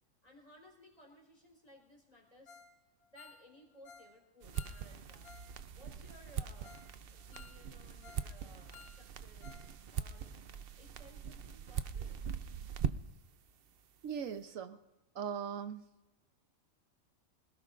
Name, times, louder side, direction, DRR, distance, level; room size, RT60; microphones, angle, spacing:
voice 1, 0.2-2.6 3.1-5.4 5.7-10.3 10.8-12.2, equal, 25° left, -1 dB, 4.3 m, -60 dB
Ringtone, 2.5-2.8 3.0-5.5 5.8-5.9 6.3-6.4 6.6-6.9 7.2-8.3 8.6-9.7 10.0-10.1 10.5-10.6, left 5 dB, 55° left, 2.2 m, -57 dB
sound 1, 4.4-13.3, right 7 dB, 55° right, 0.7 m, -41 dB
voice 2, 14.0-14.8 15.1-15.9, right 7 dB, 75° right, 9 dB, 1.2 m, -39 dB
26.0 x 17.5 x 2.5 m, 0.99 s
omnidirectional pair, 1.4 m